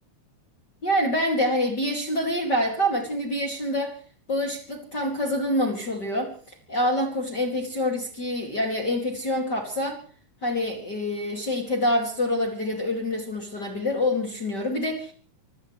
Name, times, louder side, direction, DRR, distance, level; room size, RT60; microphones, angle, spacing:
voice 1, 0.8-3.9 4.3-6.3 6.7-10.0 10.4-15.1, left 1 dB, 30° left, 1 dB, 2.0 m, -26 dB
25.0 x 17.0 x 3.3 m, 0.43 s
omnidirectional pair, 5.5 m